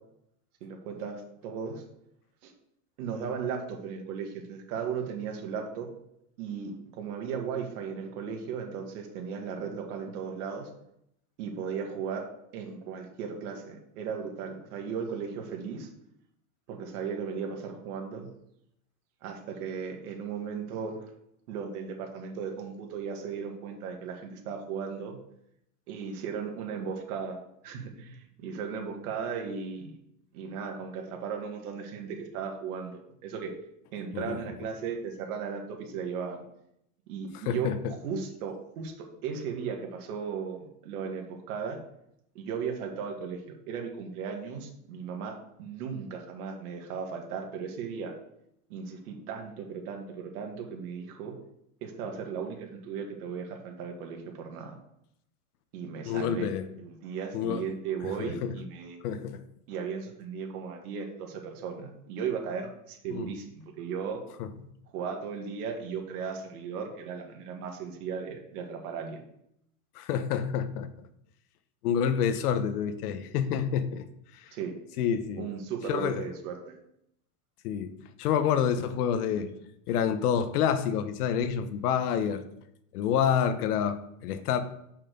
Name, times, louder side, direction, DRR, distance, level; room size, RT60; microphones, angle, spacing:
voice 1, 0.6-1.8 2.4-2.5 3.0-5.9 6.4-10.7 11.4-12.3 12.5-15.9 16.7-18.3 19.2-21.1 21.5-25.2 25.9-30.0 30.3-33.5 33.9-36.4 37.1-41.8 42.4-48.1 48.7-51.3 51.8-54.8 55.7-56.5 56.8-59.0 59.7-64.2 64.9-69.2 74.5-74.7 75.4-76.8, right 6 dB, 70° right, 2 dB, 2.0 m, -36 dB
voice 2, 37.3-37.9 56.0-56.6 57.3-57.6 58.0-58.5 59.0-59.4 63.1-63.3 64.4-64.5 69.9-70.9 71.8-74.0 74.3-74.5 75.0-75.5 75.9-76.3 77.6-77.9 78.2-79.5 79.9-82.4 82.9-84.6, left 8 dB, 75° left, 11 dB, 1.1 m, -28 dB
6.6 x 5.8 x 5.3 m, 0.77 s
supercardioid pair, 135°, 45 cm